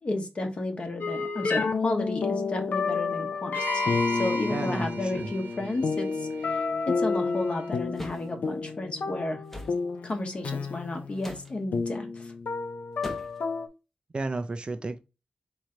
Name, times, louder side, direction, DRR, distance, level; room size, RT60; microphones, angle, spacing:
voice 1, 0.0-6.6 7.0-9.4 10.0-12.3, left 2 dB, 40° left, 1.0 m, -33 dB
sound 1, 1.0-13.7, left 4 dB, 75° left, 0.6 m, -30 dB
sound 2, 3.5-7.7, right 6 dB, 90° right, 0.7 m, -40 dB
voice 2, 4.5-5.3 14.1-15.0, right 3 dB, 35° right, 0.4 m, -32 dB
sound 3, 8.0-8.3 9.5-9.8 11.2-11.5 13.0-13.4, left 1 dB, 10° left, 0.7 m, -40 dB
3.7 x 3.1 x 4.3 m
wide cardioid pair, 135°, 3 cm